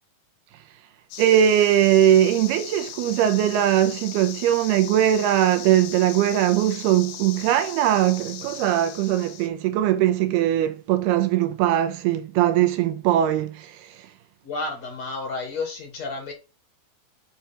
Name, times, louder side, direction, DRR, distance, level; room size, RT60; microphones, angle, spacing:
sound 1, 1.1-9.5, left 10 dB, 75° left, 3.0 m, -38 dB
voice 1, 1.2-14.1, right 11 dB, 80° right, 2.7 m, -20 dB
voice 2, 14.4-16.3, left 3 dB, 45° left, 2.9 m, -31 dB
6.9 x 6.0 x 5.8 m
omnidirectional pair, 4.7 m